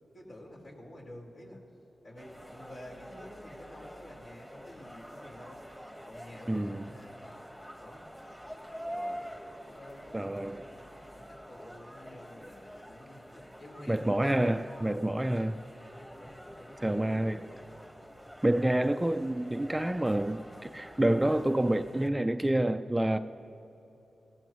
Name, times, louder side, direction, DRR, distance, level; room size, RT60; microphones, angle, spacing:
voice 1, 0.1-1.6 2.0-5.6 6.0-7.3 7.8-8.1 8.8-9.2 9.6-10.8 11.1-14.1 14.8-15.1 16.1-17.7, left 1 dB, 65° left, -4 dB, 4.3 m, -50 dB
sound 1, 2.2-22.1, equal, 10° left, 1.5 m, -46 dB
voice 2, 6.5-6.8 10.1-10.6 13.9-15.6 16.8-17.4 18.4-23.2, right 1 dB, 10° right, 9 dB, 0.4 m, -28 dB
27.5 x 17.0 x 3.1 m, 3.0 s
cardioid pair, 80°, 0 cm